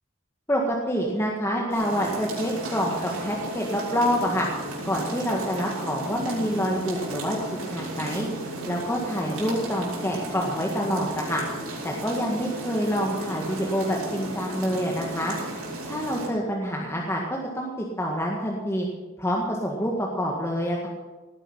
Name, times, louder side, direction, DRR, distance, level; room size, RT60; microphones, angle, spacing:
voice 1, 0.5-4.5 4.8-7.4 7.7-8.3 8.7-11.4 11.8-15.4 15.8-18.9 19.2-20.9, equal, 15° left, -2 dB, 1.8 m, -27 dB
sound 1, 1.7-16.3, right 1 dB, 90° right, 6.1 m, -34 dB
18.5 x 11.0 x 5.6 m, 1.3 s
head